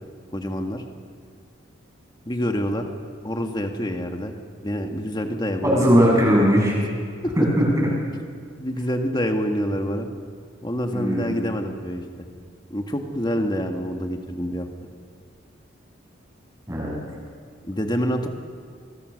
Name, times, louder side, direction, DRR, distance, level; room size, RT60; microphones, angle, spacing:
voice 1, 0.3-0.8 2.3-2.9 3.2-4.3 4.6-6.0 7.2-7.3 8.6-10.1 10.6-12.0 12.7-14.7 17.6-18.3, equal, 20° left, 4 dB, 1.8 m, -26 dB
voice 2, 5.6-6.8 7.4-7.9 10.9-11.3 16.7-17.0, equal, 15° right, -2 dB, 7.2 m, -19 dB
24.5 x 23.5 x 6.5 m, 2.1 s
head